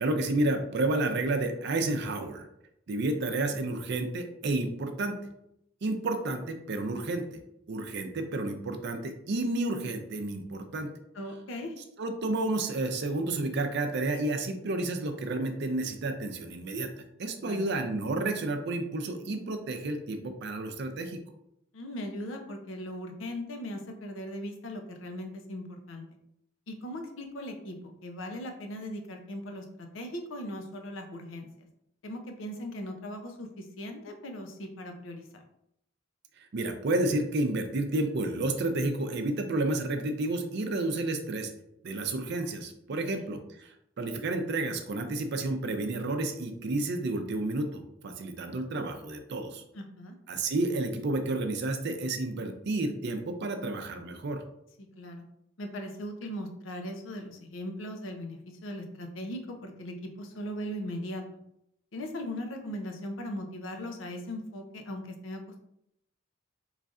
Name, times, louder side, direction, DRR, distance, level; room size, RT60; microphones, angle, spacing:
voice 1, 0.0-2.5 2.9-5.2 5.8-7.4 7.7-10.9 12.0-16.9 17.2-21.2 36.5-41.5 41.8-49.6 50.3-54.4, right 2 dB, 60° right, 6 dB, 0.5 m, -31 dB
voice 2, 11.1-11.8 17.4-17.7 21.7-26.1 26.7-31.7 32.0-35.4 42.9-43.3 49.7-50.1 54.8-55.2 55.6-61.2 61.9-65.6, left 1 dB, 75° left, 4 dB, 0.6 m, -39 dB
3.8 x 3.2 x 2.4 m, 0.79 s
head